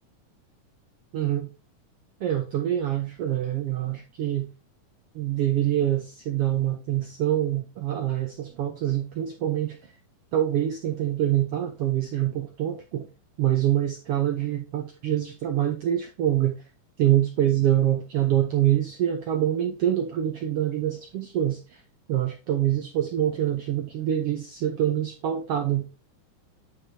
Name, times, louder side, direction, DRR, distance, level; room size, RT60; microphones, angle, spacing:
voice 1, 1.1-1.5 2.2-4.5 5.1-9.8 10.3-13.1 13.4-16.6 17.0-21.8 22.1-25.9, right 11 dB, 75° right, 1.3 m, -25 dB
9.5 x 4.7 x 2.7 m
omnidirectional pair, 3.7 m